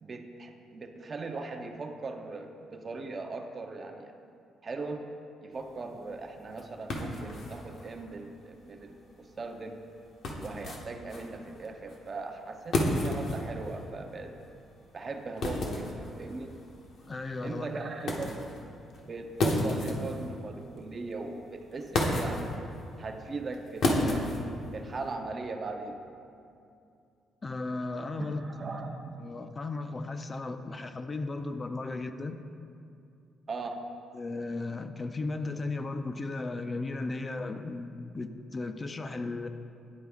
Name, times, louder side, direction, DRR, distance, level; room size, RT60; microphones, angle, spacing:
voice 1, 0.0-4.1 4.6-5.1 5.4-9.8 10.4-14.4 14.9-16.5 17.4-18.5 19.1-22.5 23.0-24.3 24.7-26.0 28.2-29.2 33.5-33.8, right 3 dB, 40° right, 4 dB, 0.5 m, -39 dB
sound 1, 5.5-25.1, left 1 dB, 65° left, 0.9 m, -34 dB
voice 2, 17.1-17.7 27.4-28.4 29.2-32.4 34.1-39.5, left 3 dB, 30° left, 8 dB, 0.3 m, -35 dB
9.7 x 4.2 x 3.5 m, 2.5 s
cardioid pair, 90°, 0 cm